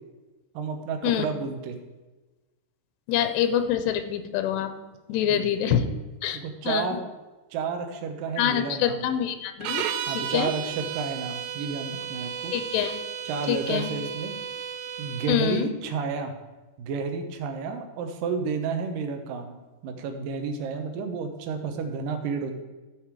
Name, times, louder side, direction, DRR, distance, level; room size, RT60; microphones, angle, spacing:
voice 1, 0.5-1.8 5.3-5.9 6.3-7.1 7.5-9.0 10.1-12.5 13.2-14.3 15.0-16.3 16.8-19.6 19.8-22.6, right 5 dB, 70° right, 5 dB, 2.3 m, -31 dB
voice 2, 3.1-4.7 5.1-5.9 6.2-7.0 8.4-9.8 10.1-10.5 12.5-12.9 13.5-13.9 15.3-15.7, left 9 dB, 85° left, 9 dB, 2.9 m, -26 dB
sound 1, 9.6-15.4, right 9 dB, 90° right, 2.8 m, -34 dB
13.5 x 6.7 x 4.8 m, 1.2 s
omnidirectional pair, 4.8 m